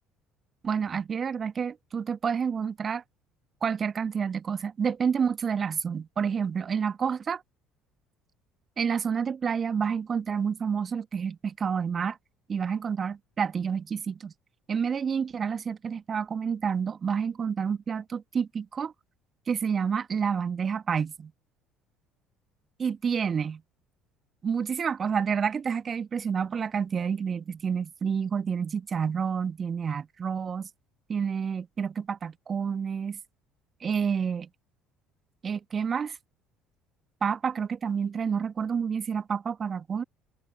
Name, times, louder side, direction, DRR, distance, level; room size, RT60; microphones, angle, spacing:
voice 1, 0.6-3.0 3.6-7.4 8.8-12.2 12.5-14.3 14.7-18.9 19.5-21.3 22.8-23.6 24.4-30.7 31.1-33.2 33.8-34.5 35.4-36.2 37.2-40.0, right 6 dB, 35° right, 1.6 m, -29 dB
open air
figure-of-eight pair, 55°, 0 cm